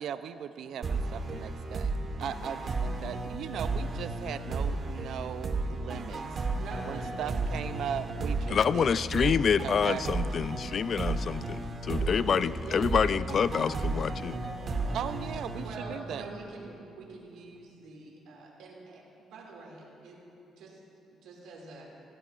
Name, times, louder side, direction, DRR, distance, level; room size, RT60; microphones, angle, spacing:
voice 1, 0.0-1.9 2.2-6.2 6.9-8.9 9.6-10.0 10.4-10.8 14.9-16.3, right 9 dB, 75° right, 12 dB, 0.4 m, -38 dB
sound 1, 0.8-16.3, right 3 dB, 45° right, 1.2 m, -33 dB
voice 2, 6.6-7.2 12.6-13.1 15.6-20.2 20.5-20.8 21.1-21.9, right 3 dB, 90° right, -2 dB, 2.4 m, -46 dB
voice 3, 8.5-14.4, left 6 dB, 50° left, 16 dB, 0.3 m, -27 dB
Laughter, 11.9-13.4 14.4-15.7, left 4 dB, 75° left, 3.1 m, -55 dB
16.0 x 16.0 x 2.5 m, 2.7 s
cardioid pair, 90°, 0 cm